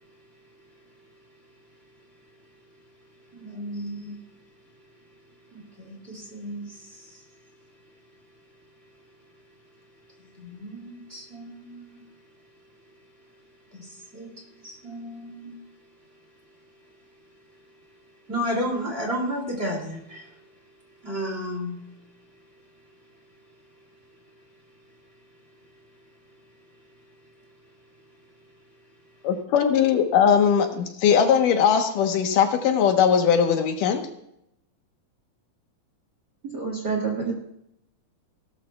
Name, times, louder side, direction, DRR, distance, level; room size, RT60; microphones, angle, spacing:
voice 1, 3.3-4.2 5.5-7.2 10.3-12.0 13.7-15.6 18.3-20.4 21.0-21.9, equal, 20° right, -1 dB, 2.4 m, -33 dB
voice 2, 29.2-34.1, left 7 dB, 80° left, 5 dB, 2.7 m, -20 dB
voice 3, 36.5-37.3, right 5 dB, 45° right, 0 dB, 1.5 m, -27 dB
18.0 x 12.5 x 2.3 m, 0.79 s
omnidirectional pair, 3.8 m